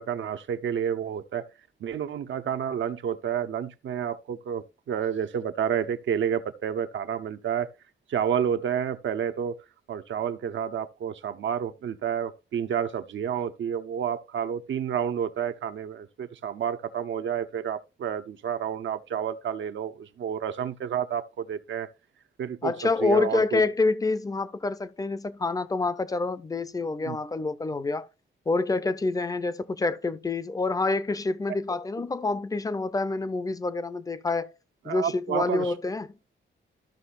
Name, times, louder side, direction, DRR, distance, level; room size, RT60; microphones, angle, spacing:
voice 1, 0.0-1.5 1.8-7.7 8.1-9.6 9.9-21.9 22.4-23.6 27.0-27.2 31.7-31.8 34.9-35.7, right 8 dB, 75° right, 0.7 m, -30 dB
voice 2, 22.6-28.1 28.5-34.5 34.8-36.1, left 3 dB, 20° left, 0.5 m, -27 dB
13.0 x 6.0 x 2.5 m
wide cardioid pair, 170°, 20 cm